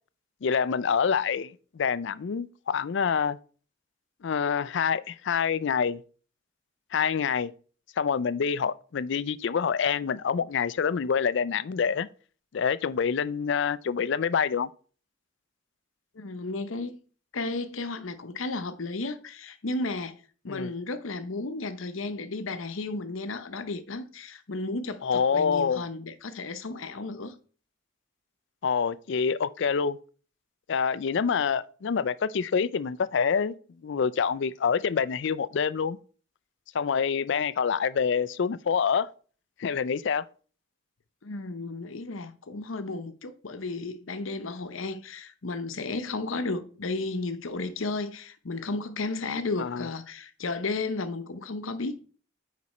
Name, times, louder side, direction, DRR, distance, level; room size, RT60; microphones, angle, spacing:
voice 1, 0.4-3.4 4.2-6.0 6.9-7.5 8.0-12.1 12.5-14.7 20.5-20.7 25.0-25.8 28.6-30.0 30.7-33.5 33.8-36.0 36.7-39.1 39.6-40.2 49.6-49.9, left 6 dB, 60° left, 0.4 m, -26 dB
voice 2, 16.1-17.0 17.3-20.2 20.4-27.3 41.2-52.0, left 3 dB, 80° left, 0.8 m, -33 dB
9.5 x 4.1 x 4.2 m
head